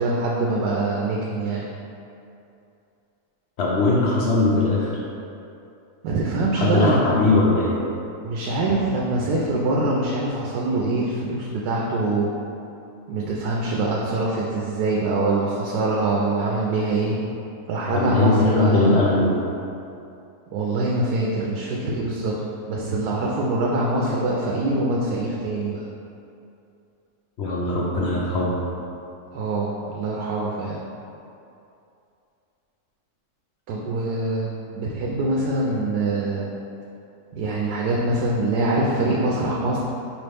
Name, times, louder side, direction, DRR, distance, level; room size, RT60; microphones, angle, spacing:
voice 1, 0.0-1.7 6.0-7.2 8.2-12.3 13.1-17.2 17.7-19.1 20.5-22.3 22.7-25.8 29.3-30.8 33.7-36.5 37.4-39.8, right 2 dB, 90° right, -3 dB, 1.1 m, -24 dB
voice 2, 3.6-5.0 6.6-7.8 17.9-19.3 27.4-28.5, left 2 dB, 70° left, -5 dB, 0.6 m, -20 dB
4.7 x 3.0 x 3.3 m, 2.6 s
omnidirectional pair, 1.6 m